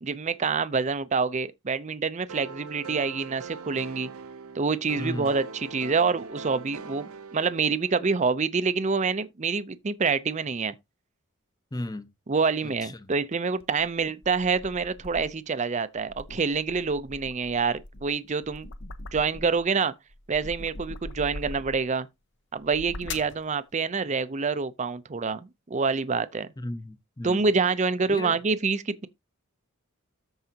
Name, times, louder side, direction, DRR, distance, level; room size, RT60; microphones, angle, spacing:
voice 1, 0.0-4.1 4.5-10.7 12.3-18.7 19.1-19.9 20.3-22.1 22.5-25.4 25.7-26.5 27.2-29.1, right 4 dB, 35° right, 0.5 m, -27 dB
sound 1, 2.3-8.2, right 4 dB, 90° right, 0.8 m, -42 dB
voice 2, 5.0-5.3 11.7-12.1 12.6-13.1 26.6-27.5 28.1-28.4, left 1 dB, 20° left, 0.7 m, -35 dB
sound 2, 13.6-15.5 16.0-19.7 20.1-22.0 22.6-23.4, left 2 dB, 55° left, 0.9 m, -41 dB
13.5 x 4.7 x 2.8 m
head